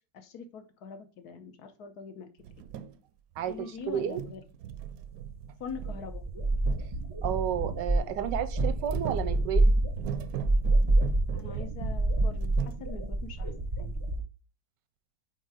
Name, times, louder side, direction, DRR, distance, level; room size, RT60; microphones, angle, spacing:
voice 1, 0.1-2.3 2.6-2.7 3.5-4.4 5.6-6.3 11.3-13.5 13.8-13.9, left 5 dB, 65° left, 1.4 m, -43 dB
sound 1, 2.4-3.0 3.3-3.8 4.1-7.8 8.5-12.8, right 9 dB, 70° right, 0.9 m, -39 dB
voice 2, 3.4-4.2 7.2-9.7, right 9 dB, 90° right, 1.3 m, -32 dB
sound 2, 5.3-5.4 5.7-14.2, right 2 dB, 25° right, 0.7 m, -28 dB
4.5 x 4.5 x 4.7 m
omnidirectional pair, 1.9 m